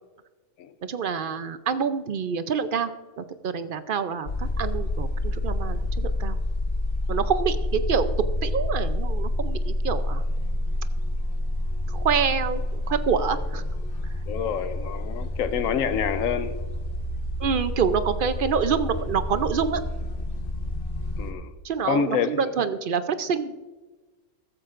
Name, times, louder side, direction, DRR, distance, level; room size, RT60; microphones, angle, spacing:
voice 1, 0.8-2.9 3.2-6.4 7.1-10.2 11.9-13.6 17.4-19.8 21.6-23.5, right 6 dB, 55° right, 11 dB, 0.6 m, -26 dB
sound 1, 4.3-21.3, left 1 dB, 45° left, 1.3 m, -28 dB
voice 2, 14.3-16.5 21.2-21.5 21.9-22.4, left 7 dB, 90° left, 11 dB, 1.1 m, -27 dB
14.5 x 13.5 x 2.5 m, 1.2 s
omnidirectional pair, 1.3 m